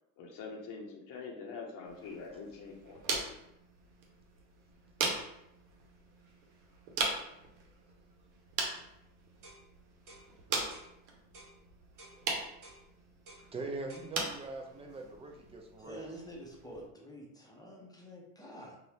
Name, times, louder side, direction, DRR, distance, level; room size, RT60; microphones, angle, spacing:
voice 1, 0.2-3.0, left 4 dB, 45° left, 0 dB, 0.7 m, -44 dB
sound 1, 1.8-16.9, right 3 dB, 70° right, 0.9 m, -40 dB
sound 2, 9.4-9.6 10.1-10.3 10.7-10.9 11.3-11.6 12.0-12.2 12.6-12.8 13.3-13.5 13.9-14.1, right 1 dB, 45° right, 1.0 m, -54 dB
voice 2, 13.5-16.0, right 3 dB, 15° right, 2 dB, 0.3 m, -42 dB
voice 3, 15.8-18.8, equal, 10° left, -2 dB, 0.8 m, -48 dB
2.6 x 2.4 x 3.3 m, 0.82 s
hypercardioid pair, 80°, 48 cm